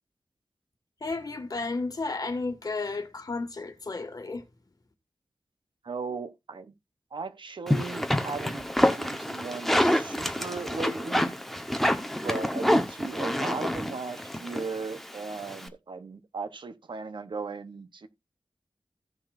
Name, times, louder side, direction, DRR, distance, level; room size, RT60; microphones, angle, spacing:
voice 1, 1.0-4.4, left 3 dB, 50° left, 1.8 m, -33 dB
voice 2, 5.8-6.7 7.1-8.7 9.0-11.3 12.2-18.1, right 4 dB, 75° right, 1.0 m, -37 dB
sound 1, 7.7-15.7, equal, 5° left, 1.1 m, -27 dB
16.0 x 5.8 x 2.6 m
wide cardioid pair, 85°, 8 cm